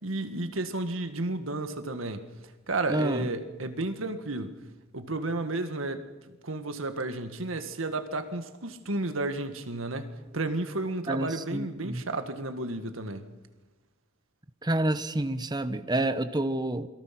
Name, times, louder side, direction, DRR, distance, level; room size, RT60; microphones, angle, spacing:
voice 1, 0.0-2.3 2.7-4.5 4.9-6.0 6.4-13.2, right 2 dB, 75° right, 8 dB, 1.8 m, -32 dB
voice 2, 2.9-3.3 11.1-12.0 14.6-16.9, right 1 dB, 20° right, 11 dB, 0.9 m, -28 dB
28.0 x 22.5 x 6.0 m, 1.2 s
head